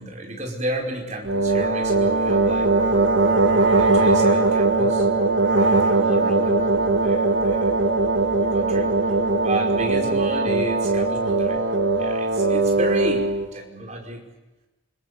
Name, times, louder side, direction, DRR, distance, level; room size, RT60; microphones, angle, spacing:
voice 1, 0.0-2.7 3.7-5.1 5.6-7.8 8.4-8.9 9.4-11.6 12.0-14.2, right 1 dB, 35° right, 1 dB, 4.9 m, -32 dB
sound 1, 1.3-13.5, right 3 dB, 65° right, 2.0 m, -20 dB
28.5 x 21.5 x 6.8 m, 1.1 s
head